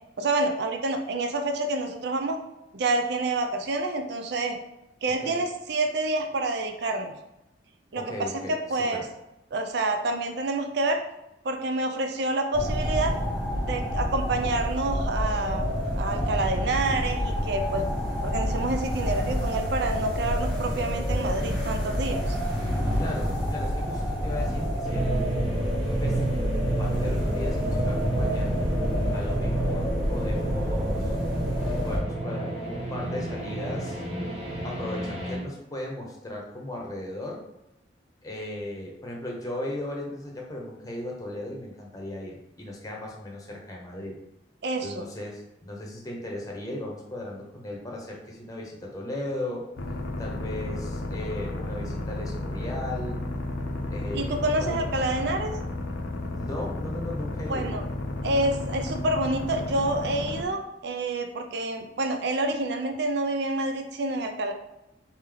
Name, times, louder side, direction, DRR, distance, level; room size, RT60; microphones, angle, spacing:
voice 1, 0.2-2.4 2.7-4.6 5.0-7.1 7.9-9.0 9.5-11.0 11.4-13.2 13.6-15.7 16.0-17.8 18.2-22.4 44.6-45.0 54.1-55.5 57.5-57.8 58.2-64.5, right 2 dB, 60° right, 5 dB, 0.5 m, -28 dB
voice 2, 8.0-8.6 8.9-9.0 22.9-25.3 26.0-26.2 26.7-28.5 29.1-31.1 31.8-34.0 34.6-37.4 38.2-44.2 44.8-49.7 50.2-53.2 53.9-54.8 56.3-57.7, left 1 dB, 20° left, -2 dB, 0.9 m, -36 dB
sound 1, 12.5-32.0, equal, ahead, 1.4 m, -28 dB
sound 2, 24.8-35.4, right 2 dB, 30° right, 1.0 m, -32 dB
sound 3, 49.8-60.4, left 2 dB, 75° left, 0.6 m, -33 dB
4.2 x 3.1 x 3.8 m, 0.90 s
head